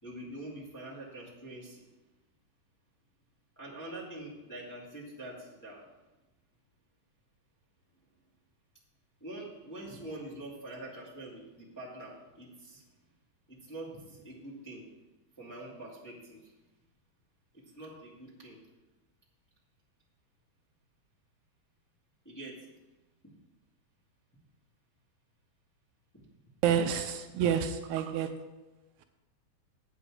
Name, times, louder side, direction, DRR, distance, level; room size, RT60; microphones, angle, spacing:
voice 1, 0.0-1.9 3.5-5.9 9.2-12.8 13.5-14.8 15.4-16.5 17.5-18.6 22.2-22.7 23.2-23.3 26.1-26.2, right 1 dB, 5° left, -7 dB, 1.6 m, -45 dB
voice 2, 26.6-28.3, right 8 dB, 80° right, 7 dB, 2.0 m, -28 dB
8.5 x 8.0 x 4.9 m, 1.1 s
omnidirectional pair, 3.6 m